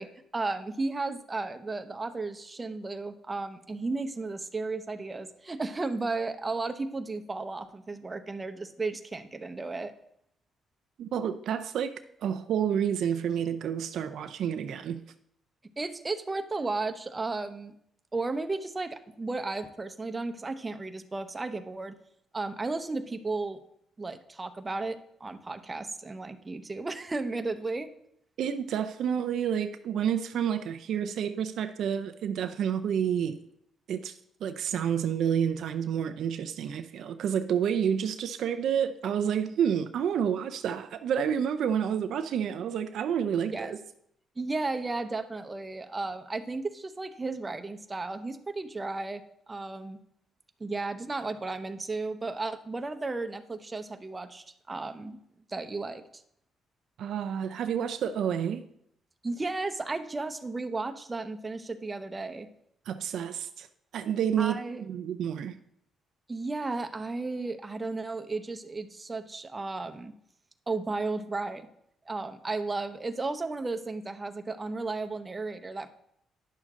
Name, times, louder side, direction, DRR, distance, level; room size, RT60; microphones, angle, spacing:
voice 1, 0.0-9.9 15.8-17.7 18.1-22.0 22.3-23.6 24.0-27.9 43.5-43.7 44.4-49.2 49.5-50.0 50.6-55.2 55.5-56.2 59.2-62.5 64.4-64.8 66.3-70.1 70.7-71.7 72.1-75.9, right 3 dB, 20° right, 7 dB, 0.8 m, -34 dB
voice 2, 11.0-15.0 28.4-33.4 33.9-34.1 34.4-43.7 57.0-58.6 62.9-63.7 63.9-64.6 64.9-65.6, right 8 dB, 70° right, 9 dB, 0.5 m, -29 dB
10.5 x 6.4 x 3.7 m, 0.72 s
cardioid pair, 90°, 0 cm